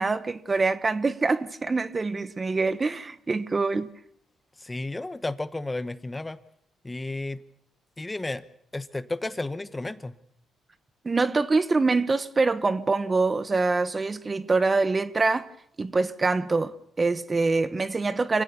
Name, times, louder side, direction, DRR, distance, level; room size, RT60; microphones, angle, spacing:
voice 1, 0.0-3.9 11.0-15.5 15.8-18.4, right 3 dB, 30° right, 1.0 m, -25 dB
voice 2, 4.6-6.4 6.8-7.4 8.0-8.4 8.7-10.2, left 2 dB, 15° left, 1.1 m, -32 dB
26.0 x 16.0 x 7.0 m
cardioid pair, 90°, 0 cm